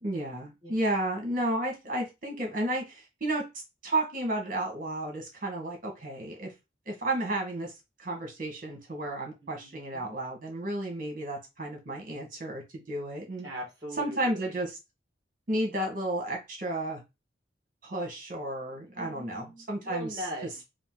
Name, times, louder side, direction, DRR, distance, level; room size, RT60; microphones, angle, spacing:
voice 1, 0.0-3.4 3.8-6.5 6.8-7.7 8.0-13.5 14.0-14.8 15.5-17.0 17.8-20.2, right 1 dB, 50° right, 1.5 m, -32 dB
voice 2, 9.4-10.2 13.4-14.6 18.9-20.6, right 1 dB, 20° right, 1.7 m, -41 dB
4.0 x 2.6 x 3.8 m
head